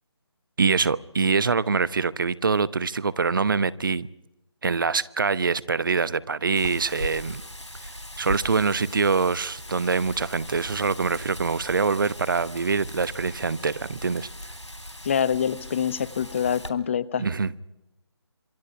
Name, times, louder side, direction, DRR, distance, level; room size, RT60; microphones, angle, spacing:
voice 1, 0.6-4.1 4.6-7.4 7.8-7.9 8.2-14.3 17.2-17.5, right 4 dB, 45° right, 18 dB, 0.9 m, -24 dB
Wind, 6.6-16.7, equal, 85° left, 3.3 m, -39 dB
voice 2, 15.0-17.2, left 8 dB, 25° left, 18 dB, 0.8 m, -25 dB
26.5 x 24.0 x 5.8 m, 0.90 s
figure-of-eight pair, 150°, 15 cm